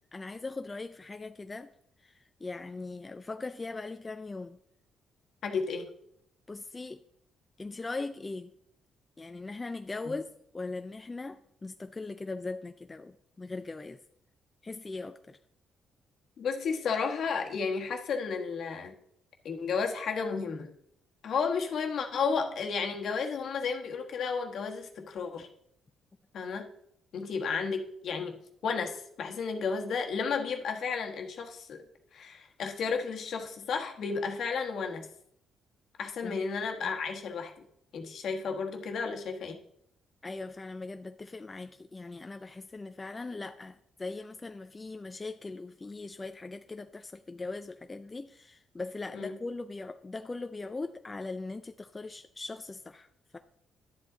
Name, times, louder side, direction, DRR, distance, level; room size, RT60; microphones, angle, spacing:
voice 1, 0.1-1.7 2.0-4.6 6.5-7.0 7.6-8.5 9.2-14.0 14.6-15.4 36.2-36.4 40.2-53.1 53.3-53.4, left 3 dB, 25° left, 8 dB, 0.5 m, -40 dB
voice 2, 5.4-5.9 10.0-10.1 16.4-18.9 19.4-20.7 21.2-25.5 26.3-26.7 27.1-28.4 28.6-31.8 32.1-35.1 36.0-37.6 37.9-39.6 49.1-49.4, left 5 dB, 65° left, 3 dB, 1.4 m, -32 dB
11.0 x 7.9 x 3.9 m, 0.73 s
cardioid pair, 90°, 0 cm